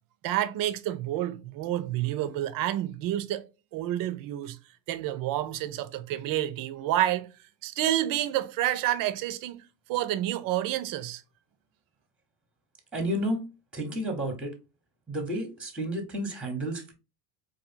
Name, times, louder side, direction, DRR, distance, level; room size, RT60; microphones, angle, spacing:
voice 1, 0.2-3.4 3.7-4.6 4.9-7.3 7.6-9.6 9.9-11.2, right 13 dB, 45° right, 0.6 m, -29 dB
voice 2, 12.9-13.4 13.7-14.5 15.1-16.9, right 1 dB, ahead, 1.0 m, -31 dB
4.6 x 2.6 x 2.5 m
hypercardioid pair, 70°, 50 cm